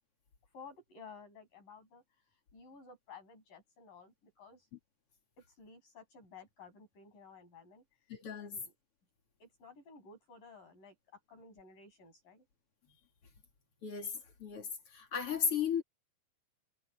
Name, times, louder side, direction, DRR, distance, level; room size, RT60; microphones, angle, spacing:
voice 1, 0.5-2.0 2.5-4.7 5.6-7.8 8.4-8.7 9.4-10.9 11.3-12.4, left 4 dB, 65° left, 9.7 m, -54 dB
voice 2, 8.1-8.6 13.8-14.1 14.4-14.7 14.9-15.8, left 7 dB, 40° left, 3.1 m, -34 dB
omnidirectional pair, 4.2 m